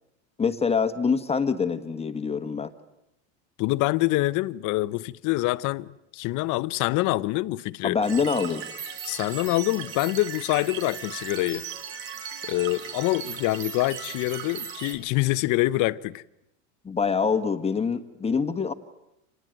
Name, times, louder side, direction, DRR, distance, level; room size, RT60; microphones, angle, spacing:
voice 1, 0.4-2.7 7.8-8.6 16.8-18.7, left 5 dB, 15° left, 1.5 m, -25 dB
voice 2, 3.6-8.0 9.0-11.7 12.4-16.2, left 19 dB, 50° left, 0.9 m, -25 dB
sound 1, 8.0-15.0, right 7 dB, 65° right, 5.2 m, -37 dB
27.5 x 19.5 x 9.1 m
supercardioid pair, 110°, 39 cm